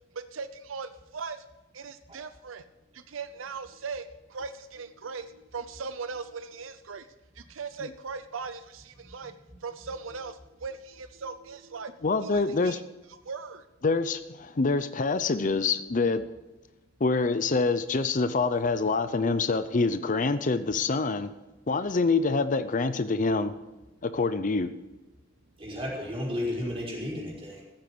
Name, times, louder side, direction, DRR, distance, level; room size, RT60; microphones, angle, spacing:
voice 1, 0.3-1.4 1.7-2.6 3.1-4.0 4.3-5.3 5.5-7.0 7.4-9.3 9.6-11.9 12.2-12.7 13.3-13.6, right 5 dB, 85° right, 11 dB, 0.7 m, -39 dB
voice 2, 12.0-12.8 13.8-16.3 17.0-21.3 21.7-23.5 24.0-24.7, left 3 dB, 40° left, 12 dB, 0.6 m, -26 dB
voice 3, 25.6-27.6, left 1 dB, 30° right, -4 dB, 4.9 m, -33 dB
15.0 x 8.9 x 6.0 m, 1.1 s
head